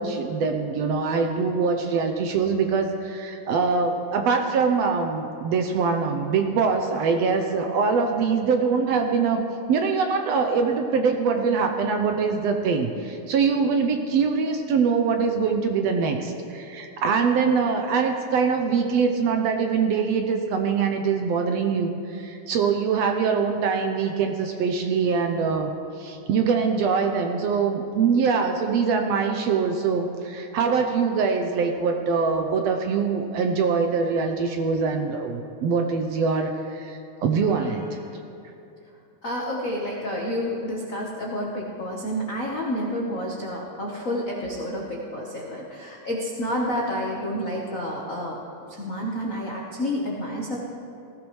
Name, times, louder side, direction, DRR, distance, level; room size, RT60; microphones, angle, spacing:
voice 1, 0.0-9.4 9.7-25.7 26.0-38.0, right 5 dB, 75° right, 4 dB, 1.7 m, -23 dB
voice 2, 39.2-48.4 48.7-50.6, equal, 65° left, -3 dB, 0.8 m, -29 dB
19.5 x 15.0 x 3.2 m, 2.7 s
omnidirectional pair, 3.4 m